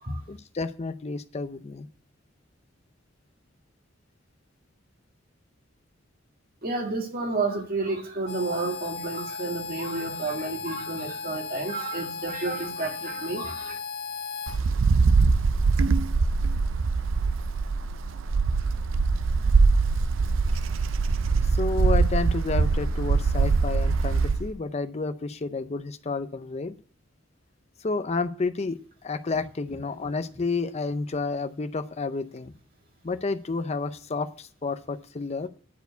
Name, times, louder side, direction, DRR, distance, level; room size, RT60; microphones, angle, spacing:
voice 1, 0.3-1.9 21.4-26.8 27.8-32.5 33.0-35.5, left 3 dB, 35° left, 0.5 m, -30 dB
voice 2, 6.6-13.8, right 3 dB, 50° right, 2.0 m, -31 dB
Harmonica, 8.2-14.6, left 5 dB, 70° left, 1.6 m, -36 dB
Wind, 14.5-24.5, right 4 dB, 85° right, 0.5 m, -23 dB
10.5 x 4.6 x 8.0 m
head